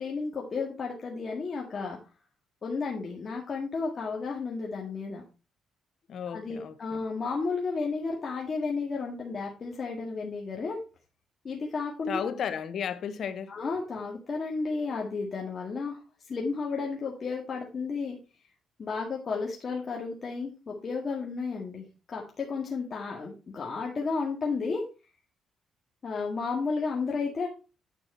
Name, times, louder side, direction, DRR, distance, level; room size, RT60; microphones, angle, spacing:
voice 1, 0.0-2.0 2.6-5.2 6.3-10.8 11.4-12.3 13.5-16.0 16.3-18.2 18.8-24.9 26.0-27.5, left 4 dB, 45° left, 1.8 m, -32 dB
voice 2, 6.1-7.0 12.1-13.6, left 8 dB, 60° left, 0.9 m, -34 dB
9.5 x 4.6 x 4.4 m
cardioid pair, 90°, 0 cm